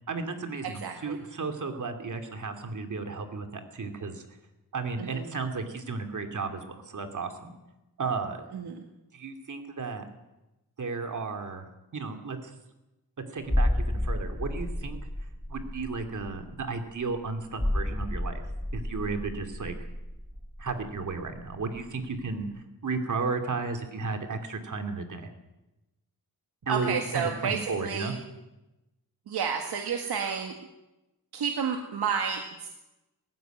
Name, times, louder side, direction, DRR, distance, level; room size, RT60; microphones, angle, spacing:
voice 1, 0.1-4.2 4.7-7.5 8.0-8.5 9.1-10.1 10.8-11.7 11.9-12.5 13.3-15.0 15.5-18.4 18.7-19.7 20.6-22.5 22.8-25.3 26.6-28.1, right 4 dB, 50° right, 6 dB, 2.9 m, -34 dB
voice 2, 0.6-1.2 5.0-5.3 8.5-8.8 26.7-28.1 29.3-30.5 31.3-32.7, right 6 dB, 90° right, 3 dB, 1.9 m, -31 dB
sound 1, 13.5-21.9 22.1-22.3, left 1 dB, 5° left, 0.6 m, -31 dB
19.0 x 15.5 x 9.3 m, 0.99 s
wide cardioid pair, 115°, 37 cm